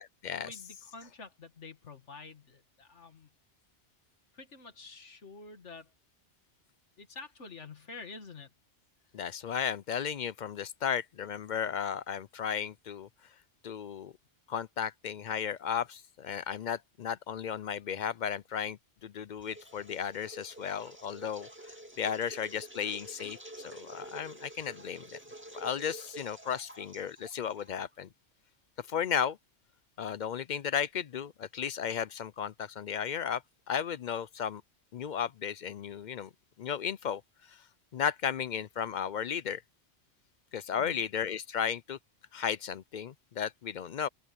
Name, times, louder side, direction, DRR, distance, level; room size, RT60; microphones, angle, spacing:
voice 1, 0.4-3.3 4.3-5.9 7.0-8.5 40.7-41.0, left 4 dB, 85° left, 2.3 m, -48 dB
voice 2, 9.1-13.1 13.6-14.1 14.5-21.5 22.0-25.0 25.5-28.1 28.9-29.4 30.0-33.4 33.7-34.6 34.9-36.3 36.6-37.2 37.5-37.6 37.9-39.6 40.5-42.0 42.3-44.1, left 8 dB, 55° left, 0.5 m, -34 dB
sound 1, 19.4-28.0, right 1 dB, 10° right, 2.1 m, -49 dB
open air
omnidirectional pair, 1.2 m